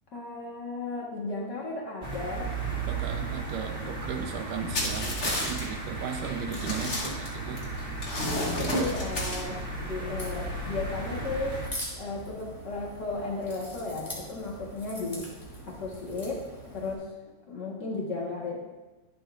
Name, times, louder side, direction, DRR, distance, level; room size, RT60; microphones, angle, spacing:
voice 1, 0.1-2.5 8.2-11.6 11.9-15.3 15.7-17.1 17.5-18.6, left 3 dB, 85° left, -3 dB, 0.9 m, -35 dB
sound 1, 2.0-11.7, right 3 dB, 10° right, 1.2 m, -34 dB
voice 2, 2.8-7.7, right 6 dB, 75° right, 5 dB, 2.1 m, -36 dB
sound 2, 4.7-5.6 6.1-6.2 6.5-7.6 8.0-9.4, left 1 dB, 30° left, 2.1 m, -31 dB
Crack, 10.0-16.9, equal, 10° left, 2.4 m, -43 dB
22.5 x 7.8 x 2.5 m, 1.1 s
omnidirectional pair, 4.3 m